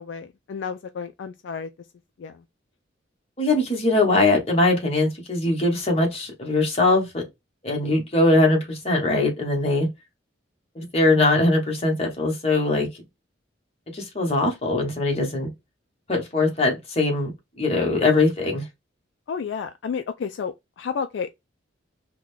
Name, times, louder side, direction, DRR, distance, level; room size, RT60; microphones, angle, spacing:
voice 1, 0.0-1.7 2.2-2.4 19.3-21.3, left 6 dB, 65° left, 0.3 m, -31 dB
voice 2, 3.4-7.3 7.6-9.9 10.8-12.9 13.9-15.5 16.1-17.3 17.6-18.6, left 2 dB, 30° left, 1.1 m, -21 dB
3.7 x 2.2 x 3.1 m
head